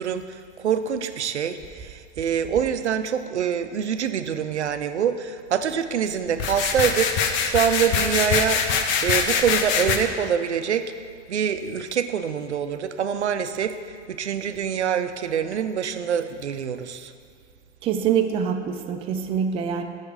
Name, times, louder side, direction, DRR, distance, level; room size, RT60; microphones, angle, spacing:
voice 1, 0.0-7.2 7.4-8.6 9.0-10.9 11.3-13.8 14.1-17.1, right 8 dB, 75° right, 10 dB, 0.5 m, -25 dB
sound 1, 6.4-10.0, left 6 dB, 35° left, 0.7 m, -23 dB
voice 2, 17.8-19.8, right 7 dB, 15° right, 5 dB, 0.4 m, -24 dB
6.5 x 5.9 x 6.3 m, 2.1 s
figure-of-eight pair, 85°, 34 cm